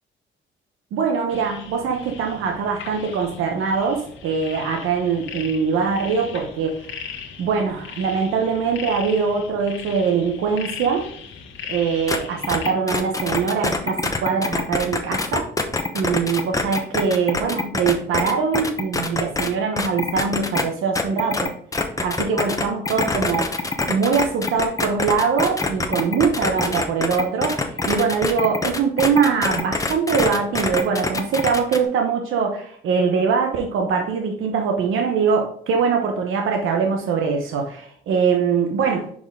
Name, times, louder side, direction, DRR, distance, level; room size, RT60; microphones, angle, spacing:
voice 1, 0.9-6.9 7.4-11.1 11.7-15.4 15.9-21.5 22.0-23.6 23.9-39.1, right 5 dB, 85° right, 2 dB, 1.0 m, -22 dB
sound 1, 1.3-12.7, left 7 dB, 75° left, 1.4 m, -38 dB
sound 2, 12.1-12.2 12.4-19.5 19.8-20.6 21.0-31.9, left 3 dB, 15° left, 0.9 m, -24 dB
6.1 x 4.9 x 3.6 m, 0.62 s
cardioid pair, 100°, 20 cm